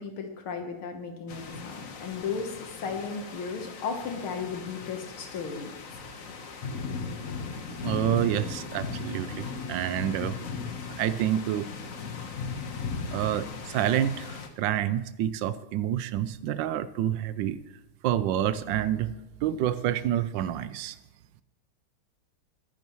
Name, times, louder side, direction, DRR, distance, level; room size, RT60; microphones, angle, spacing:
voice 1, 0.0-5.7, left 5 dB, 75° left, 5 dB, 2.0 m, -35 dB
sound 1, 1.3-14.5, left 5 dB, 50° left, 1.2 m, -38 dB
voice 2, 7.8-10.4 11.0-11.7 13.1-17.6 18.0-19.1 19.4-21.0, right 11 dB, 75° right, 15 dB, 1.1 m, -28 dB
21.5 x 11.0 x 3.1 m, 1.0 s
omnidirectional pair, 2.4 m